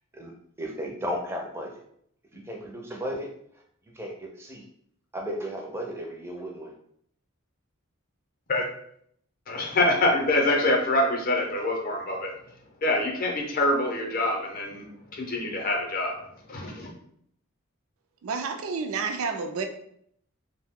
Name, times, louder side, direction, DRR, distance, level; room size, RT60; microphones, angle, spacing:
voice 1, 0.6-1.7 2.3-3.3 3.9-4.6 5.1-6.7, equal, 10° right, 0 dB, 0.4 m, -34 dB
voice 2, 9.5-12.3 12.8-14.8 15.1-16.1 16.5-16.9, left 1 dB, 40° left, 1 dB, 0.6 m, -25 dB
voice 3, 18.2-19.6, right 5 dB, 75° right, 6 dB, 0.4 m, -30 dB
2.6 x 2.0 x 3.5 m, 0.68 s
head